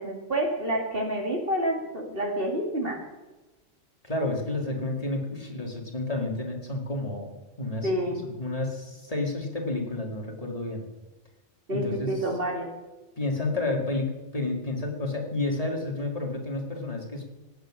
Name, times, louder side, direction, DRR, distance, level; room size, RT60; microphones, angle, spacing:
voice 1, 0.0-3.0 7.8-8.2 11.7-12.7, right 1 dB, 45° right, 1 dB, 2.4 m, -28 dB
voice 2, 4.0-7.3 7.6-7.9 8.4-10.9 11.7-12.1 13.2-17.2, left 2 dB, 30° left, 0 dB, 2.3 m, -30 dB
18.5 x 8.3 x 6.3 m, 1.1 s
omnidirectional pair, 1.3 m